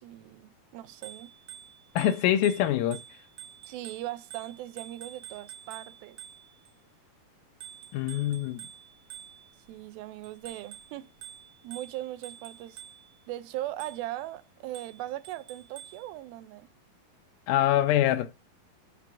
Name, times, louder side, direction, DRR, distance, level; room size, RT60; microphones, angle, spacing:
voice 1, 0.0-1.3 3.6-6.2 9.7-11.1 11.6-12.8 13.3-16.7, right 15 dB, 80° right, 2.2 m, -39 dB
Bicycle bell, 0.9-6.7 7.6-9.7 10.2-13.2 13.8-14.2 14.8-16.1, right 10 dB, 65° right, 1.9 m, -48 dB
voice 2, 2.0-3.0 7.9-8.7 17.5-18.3, left 12 dB, 80° left, 2.2 m, -24 dB
5.9 x 4.8 x 5.8 m
omnidirectional pair, 4.4 m